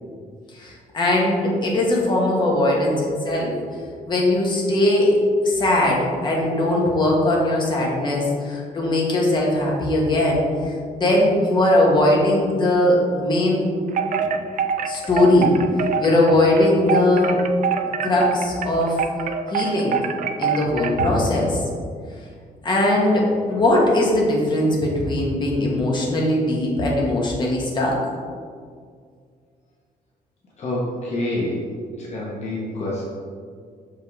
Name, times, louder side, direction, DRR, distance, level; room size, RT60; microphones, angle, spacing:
voice 1, 0.5-3.6 4.1-5.2 5.4-13.6 14.1-14.3 14.8-15.5 16.0-17.4 18.0-19.0 19.5-20.0 20.4-21.6 22.6-28.0, left 1 dB, 30° left, -3 dB, 1.4 m, -20 dB
Wind chime, 13.9-21.3, right 6 dB, 55° right, 0.4 m, -25 dB
voice 2, 30.6-31.6 31.9-33.0, left 1 dB, 45° left, -5 dB, 1.1 m, -27 dB
6.4 x 5.2 x 3.6 m, 2.1 s
cardioid pair, 140°, 16 cm